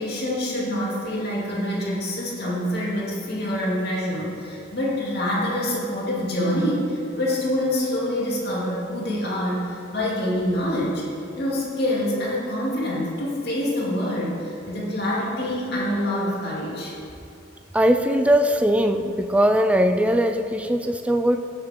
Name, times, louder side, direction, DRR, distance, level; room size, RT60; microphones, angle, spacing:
voice 1, 0.0-11.0 11.4-16.9, left 1 dB, 55° left, -6 dB, 2.6 m, -26 dB
voice 2, 17.7-21.4, equal, 5° right, 7 dB, 0.3 m, -20 dB
16.0 x 6.6 x 3.7 m, 2.6 s
head